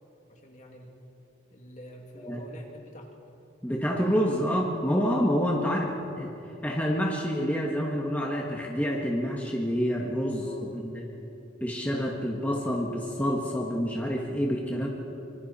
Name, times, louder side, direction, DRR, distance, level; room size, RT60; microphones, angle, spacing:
voice 1, 0.3-0.9 1.5-3.1 5.6-6.0 10.4-10.9, equal, 40° left, 0 dB, 2.6 m, -46 dB
voice 2, 3.6-6.3 6.6-11.1 11.6-14.9, equal, 10° left, -2 dB, 1.6 m, -28 dB
25.0 x 25.0 x 4.3 m, 2.8 s
head